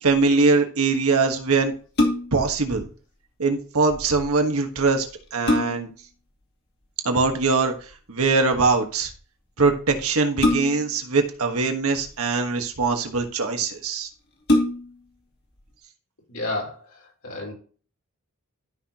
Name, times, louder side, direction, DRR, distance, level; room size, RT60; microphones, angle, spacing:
voice 1, 0.0-1.7 2.3-2.9 3.4-5.1 5.3-5.9 7.0-7.7 8.1-9.1 9.6-14.1, right 4 dB, 85° right, 4 dB, 1.4 m, -22 dB
sound 1, 1.7-2.5 4.5-4.6 5.1-6.0 7.6-7.9 10.4-11.0 12.0-12.7 13.4-13.5 13.8-13.9 14.4-15.1 15.6-15.7, left 1 dB, 50° left, 2.2 m, -24 dB
voice 2, 16.3-17.5, left 2 dB, 75° left, -2 dB, 4.4 m, -32 dB
13.0 x 5.8 x 2.9 m, 0.40 s
head